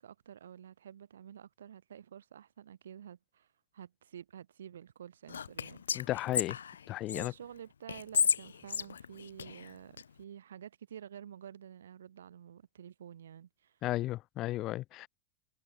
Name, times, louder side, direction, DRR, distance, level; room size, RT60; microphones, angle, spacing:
voice 1, 0.0-3.5 3.7-6.1 7.1-13.8, right 9 dB, 65° right, 7.3 m, -50 dB
Whispering, 5.3-7.3 7.9-10.0, left 7 dB, 70° left, 1.9 m, -33 dB
voice 2, 5.9-6.6 6.9-7.3 13.8-15.1, left 16 dB, 35° left, 0.9 m, -34 dB
figure-of-eight pair, 90°, 0 cm